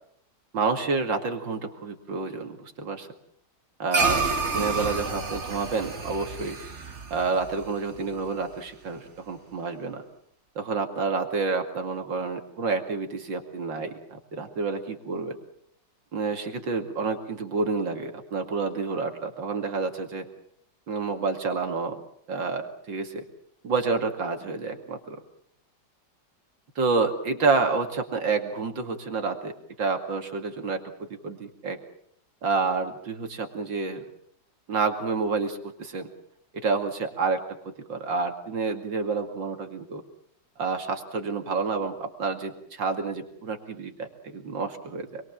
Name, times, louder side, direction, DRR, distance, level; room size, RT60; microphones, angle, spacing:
voice 1, 0.5-3.1 3.8-6.6 7.1-10.0 10.6-15.3 16.1-20.3 20.9-22.0 22.3-23.2 23.6-25.2 26.8-31.8 32.4-34.0 34.7-36.1 36.5-40.0 40.6-45.2, right 4 dB, 80° right, 5 dB, 3.0 m, -29 dB
sound 1, 3.9-8.5, right 4 dB, 40° right, 2.1 m, -29 dB
27.5 x 21.5 x 7.4 m, 0.67 s
omnidirectional pair, 2.0 m